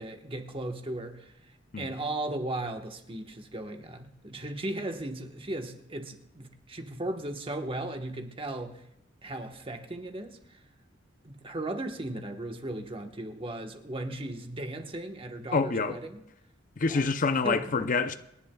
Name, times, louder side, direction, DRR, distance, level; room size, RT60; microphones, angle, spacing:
voice 1, 0.0-1.3 1.8-8.8 9.2-10.6 11.2-16.2 16.9-17.0 17.4-17.9, right 1 dB, 30° right, 1.2 m, -36 dB
voice 2, 15.5-16.0 16.8-18.1, left 4 dB, 45° left, 0.6 m, -26 dB
28.0 x 11.0 x 2.3 m
head